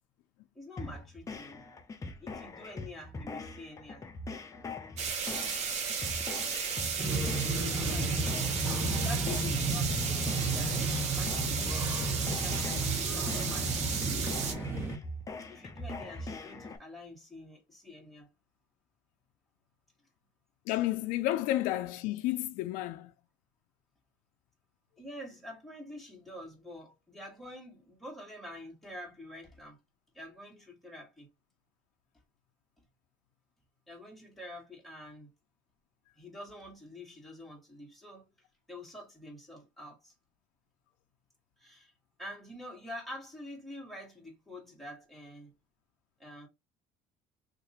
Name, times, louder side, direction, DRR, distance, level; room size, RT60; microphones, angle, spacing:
voice 1, 0.5-1.7 2.2-4.1 7.5-8.5 9.0-14.1 15.5-18.3 25.0-29.8 30.1-31.3 33.9-35.3 36.2-38.3 38.7-40.1 41.6-41.9 42.2-45.5 46.2-46.5, left 1 dB, ahead, 1.6 m, -47 dB
sound 1, 0.8-16.8, left 2 dB, 25° left, 0.6 m, -42 dB
sound 2, 5.0-14.5, right 6 dB, 55° right, 1.0 m, -34 dB
sound 3, 7.0-15.0, right 2 dB, 15° right, 1.1 m, -33 dB
voice 2, 20.7-23.1, left 15 dB, 80° left, 0.4 m, -31 dB
2.8 x 2.5 x 4.0 m
cardioid pair, 120°, 14 cm